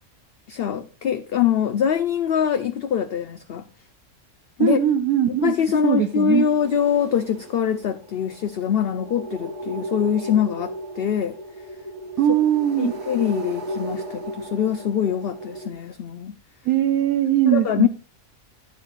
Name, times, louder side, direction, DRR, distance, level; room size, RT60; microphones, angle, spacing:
voice 1, 0.5-3.6 4.6-4.8 5.4-11.4 12.8-16.4 17.5-17.9, left 8 dB, 60° left, 0.6 m, -23 dB
voice 2, 4.6-5.5 5.8-6.5 12.2-12.9 16.7-17.9, right 11 dB, 85° right, 1.2 m, -20 dB
sound 1, 5.8-15.7, right 1 dB, 70° right, 2.6 m, -36 dB
13.0 x 9.5 x 2.4 m
omnidirectional pair, 1.5 m